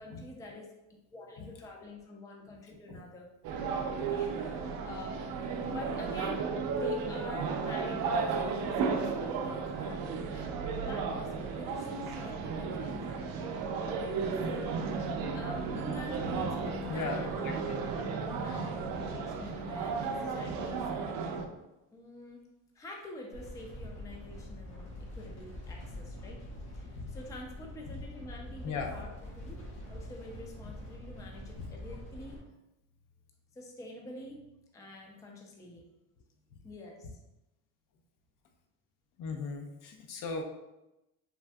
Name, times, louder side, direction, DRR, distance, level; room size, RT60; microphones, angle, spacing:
voice 1, 0.0-3.3 4.1-5.2 5.7-6.4 6.7-13.4 14.4-17.8 18.4-20.9 21.9-22.4 22.7-24.9 25.2-26.4 26.7-29.1 29.4-29.6 29.9-32.4 33.5-34.4 34.7-35.8 36.6-37.2, left 2 dB, 10° left, 0 dB, 0.4 m, -47 dB
sound 1, 3.4-21.5, right 5 dB, 65° right, 0.5 m, -34 dB
voice 2, 16.9-17.8 26.9-27.1 27.9-28.0 28.6-29.0 31.6-31.7 39.2-40.4, left 4 dB, 60° left, 4 dB, 0.5 m, -38 dB
sound 2, 23.3-32.4, left 1 dB, 75° left, 1.2 m, -45 dB
3.5 x 2.5 x 2.2 m, 0.95 s
cardioid pair, 110°, 38 cm